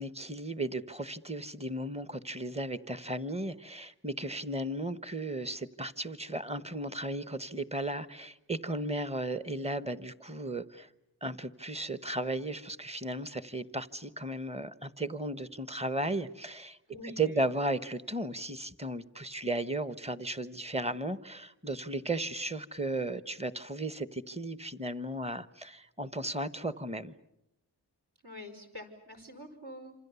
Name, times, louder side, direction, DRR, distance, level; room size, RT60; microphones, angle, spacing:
voice 1, 0.0-10.9 11.2-16.8 17.0-27.1, right 2 dB, 15° right, 14 dB, 1.0 m, -35 dB
voice 2, 16.9-17.4 28.2-29.9, left 1 dB, 65° right, 6 dB, 5.2 m, -46 dB
27.5 x 26.5 x 7.0 m, 0.86 s
wide cardioid pair, 55°, 42 cm